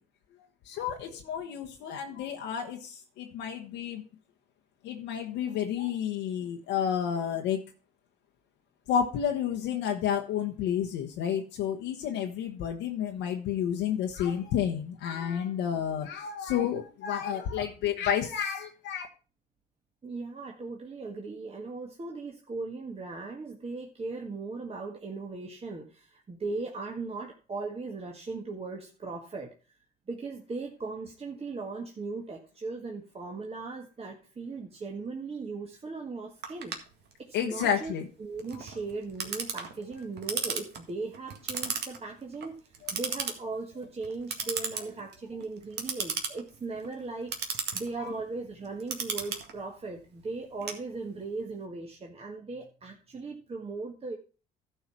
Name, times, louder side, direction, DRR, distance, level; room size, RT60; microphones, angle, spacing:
voice 1, 0.6-4.0 4.8-7.6 8.9-19.1 37.3-38.1 48.0-48.1, left 8 dB, 75° left, 2 dB, 1.1 m, -30 dB
voice 2, 20.0-29.5 30.1-36.8 37.2-37.9 38.2-54.2, right 3 dB, 30° right, 1 dB, 1.7 m, -38 dB
Clock, 36.4-51.4, right 6 dB, 60° right, 1.8 m, -37 dB
12.5 x 4.7 x 6.0 m, 0.36 s
hypercardioid pair, 65°, 20 cm